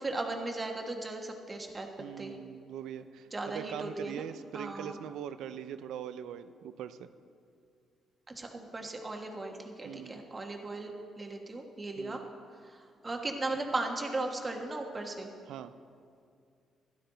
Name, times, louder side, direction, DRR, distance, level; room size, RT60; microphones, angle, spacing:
voice 1, 0.0-1.9 2.2-2.4 3.3-4.3 4.5-5.0 8.3-10.9 11.2-12.2 12.6-15.3, right 2 dB, 25° right, 3 dB, 1.4 m, -37 dB
voice 2, 2.0-7.1 9.8-10.2 12.0-12.3 15.5-15.7, right 9 dB, 80° right, 12 dB, 0.4 m, -42 dB
12.0 x 12.0 x 3.9 m, 2.4 s
cardioid pair, 90°, 0 cm